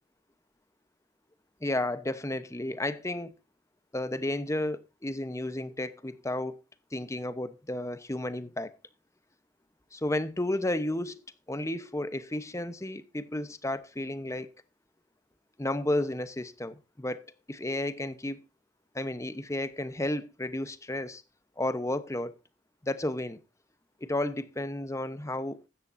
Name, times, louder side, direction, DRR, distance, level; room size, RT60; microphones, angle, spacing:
voice 1, 1.6-3.3 3.9-6.6 6.9-8.7 9.9-11.2 11.5-14.5 15.6-17.2 17.5-18.4 18.9-21.2 21.6-22.4 22.8-23.4 24.0-25.7, left 1 dB, 15° left, 0.9 m, -32 dB
16.0 x 13.0 x 2.7 m
head